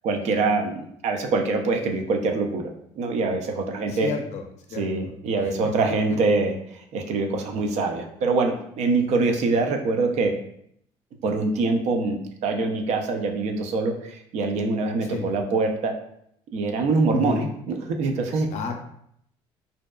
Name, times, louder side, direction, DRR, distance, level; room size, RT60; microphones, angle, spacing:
voice 1, 0.0-2.6 3.0-4.1 4.8-10.3 11.2-15.9 16.5-17.4 17.7-18.5, right 3 dB, 60° right, 4 dB, 0.4 m, -24 dB
voice 2, 3.9-5.5 5.8-5.9 15.0-15.3 17.1-17.5 18.5-18.8, left 3 dB, 60° left, 4 dB, 0.5 m, -31 dB
2.6 x 2.2 x 2.2 m, 0.71 s
supercardioid pair, 75°, 13 cm